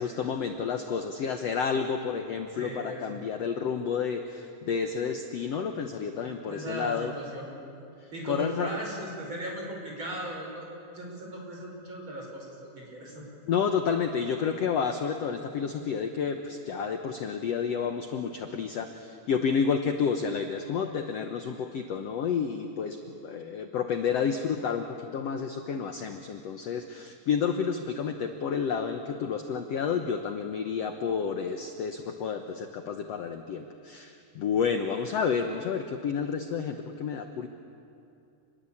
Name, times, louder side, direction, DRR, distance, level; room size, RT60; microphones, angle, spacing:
voice 1, 0.0-7.1 8.0-8.7 13.5-37.5, left 6 dB, 65° left, 6 dB, 1.7 m, -30 dB
voice 2, 2.5-3.3 6.2-7.5 8.1-13.2, right 1 dB, 35° right, -1 dB, 6.2 m, -38 dB
28.0 x 22.0 x 8.6 m, 2.6 s
omnidirectional pair, 4.0 m